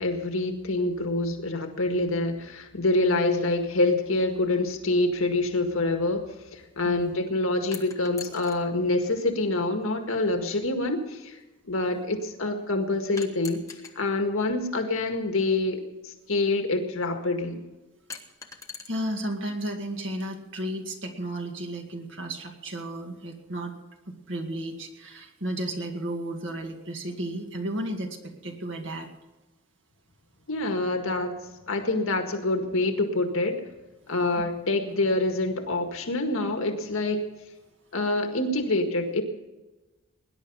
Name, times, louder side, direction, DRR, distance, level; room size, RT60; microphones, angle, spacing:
voice 1, 0.0-11.4 11.6-13.6 14.0-17.6 30.5-31.4 31.7-33.6 34.1-37.2 37.9-39.2, left 2 dB, 75° left, 4 dB, 1.8 m, -26 dB
voice 2, 6.8-7.2 18.9-23.7 24.1-29.1, right 1 dB, 60° right, 3 dB, 2.1 m, -33 dB
sound 1, 7.7-8.6 9.8-9.9 13.2-14.0 15.4-15.5 18.1-18.9, left 5 dB, 15° left, 1.2 m, -41 dB
20.0 x 10.5 x 5.5 m, 1.1 s
head